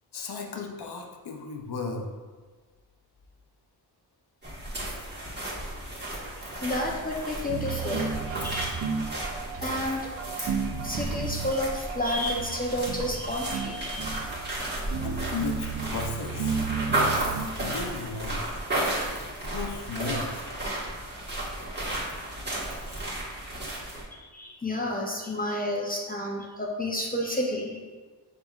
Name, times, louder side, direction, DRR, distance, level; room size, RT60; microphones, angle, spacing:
voice 1, 0.1-2.1 15.0-16.6 17.6-18.6 19.4-20.5, left 4 dB, 65° left, 2 dB, 0.7 m, -35 dB
sound 1, 4.4-24.0, right 1 dB, 25° right, 1.4 m, -33 dB
voice 2, 6.6-8.1 8.4-8.9 9.6-10.0 10.8-14.2 23.5-23.6 24.1-27.8, left 1 dB, 20° left, -2 dB, 0.6 m, -30 dB
sound 2, 7.5-17.4, right 6 dB, 75° right, 0.7 m, -33 dB
5.2 x 4.2 x 2.4 m, 1.4 s
wide cardioid pair, 85°, 42 cm